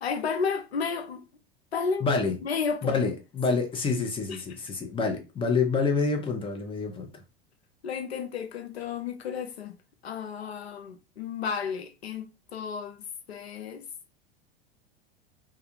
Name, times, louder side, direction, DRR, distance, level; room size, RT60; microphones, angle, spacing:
voice 1, 0.0-1.2 1.7-3.0 4.3-4.4 7.8-9.7 10.0-13.9, left 6 dB, 85° left, 0.5 m, -32 dB
voice 2, 2.0-2.4 2.8-7.2, left 4 dB, 15° left, 0.7 m, -27 dB
2.3 x 2.2 x 2.9 m
hypercardioid pair, 85°, 30 cm